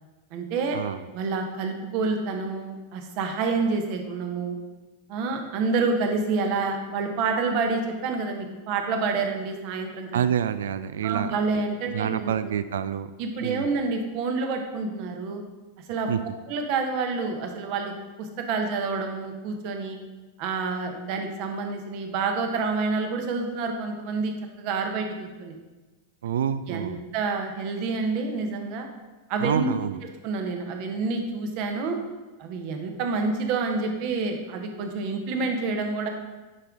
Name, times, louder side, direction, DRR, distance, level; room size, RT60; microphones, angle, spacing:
voice 1, 0.3-0.8 1.1-4.6 5.1-10.2 11.0-12.5 13.2-15.4 15.9-16.1 16.5-17.9 18.2-20.0 20.4-25.6 26.7-28.9 29.3-29.7 30.2-32.0 32.4-36.1, right 4 dB, 45° right, 4 dB, 1.0 m, -28 dB
voice 2, 10.1-11.4 11.9-13.1 13.4-13.7 16.1-16.2 26.2-27.0 29.4-30.0, right 9 dB, 60° right, 14 dB, 0.3 m, -27 dB
9.8 x 4.5 x 3.7 m, 1.2 s
figure-of-eight pair, 90°, 0 cm